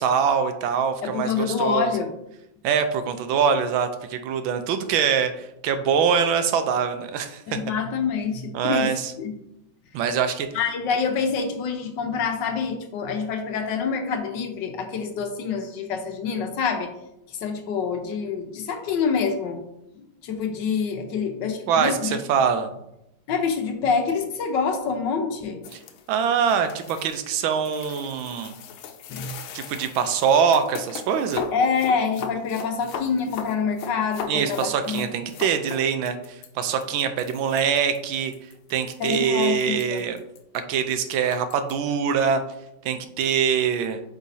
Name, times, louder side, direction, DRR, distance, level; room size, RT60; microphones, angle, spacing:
voice 1, 0.0-1.9 2.6-7.6 8.5-9.1 9.9-10.5 21.7-22.7 25.7-25.8 26.1-28.5 29.5-31.4 34.3-38.3 38.7-40.2 40.7-42.4 42.8-44.0, right 7 dB, 85° right, 8 dB, 1.4 m, -23 dB
voice 2, 1.0-2.1 7.5-9.3 10.5-16.9 17.3-19.6 19.9-22.2 23.3-25.6 29.1-29.3 31.5-35.1 39.0-40.0, left 5 dB, 65° left, 5 dB, 1.4 m, -26 dB
sound 1, 25.6-41.8, left 6 dB, 85° left, 1.4 m, -38 dB
8.4 x 4.2 x 2.7 m, 0.83 s
omnidirectional pair, 2.2 m